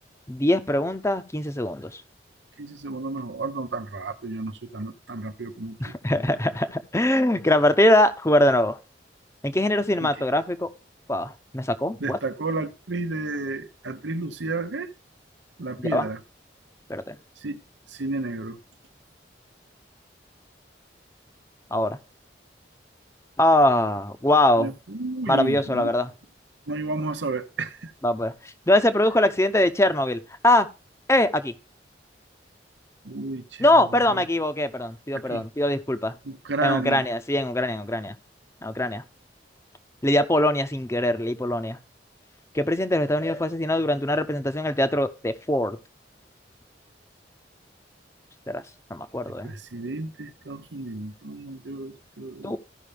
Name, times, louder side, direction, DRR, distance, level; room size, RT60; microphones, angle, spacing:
voice 1, 0.3-2.0 5.8-8.8 9.4-10.7 11.1-12.2 15.8-16.1 16.9-17.2 21.7-22.0 23.4-24.7 25.3-26.1 28.0-28.3 28.7-30.7 31.1-31.5 33.6-36.1 36.6-38.1 38.6-39.0 40.0-41.8 42.5-45.8 48.5-48.6 48.9-49.5 52.4-52.6, left 1 dB, 15° left, 0.7 m, -22 dB
voice 2, 2.6-6.0 10.0-10.1 12.0-14.9 15.6-16.2 17.4-17.6 17.9-18.6 24.6-25.9 26.7-27.9 33.0-33.7 33.9-34.2 35.1-35.4 36.2-37.0 49.4-52.6, right 3 dB, 85° right, 1.0 m, -32 dB
14.5 x 5.6 x 3.4 m
head